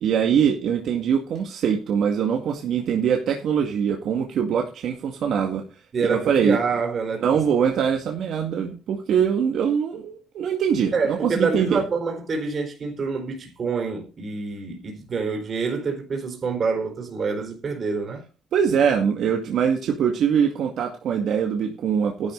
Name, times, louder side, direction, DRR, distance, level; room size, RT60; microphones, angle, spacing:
voice 1, 0.0-6.6 7.2-11.8 18.5-22.3, right 7 dB, 75° right, 2.1 m, -23 dB
voice 2, 5.9-7.2 10.9-18.2, right 4 dB, 50° right, 4.3 m, -26 dB
12.0 x 11.0 x 4.0 m
cardioid pair, 90°, 0 cm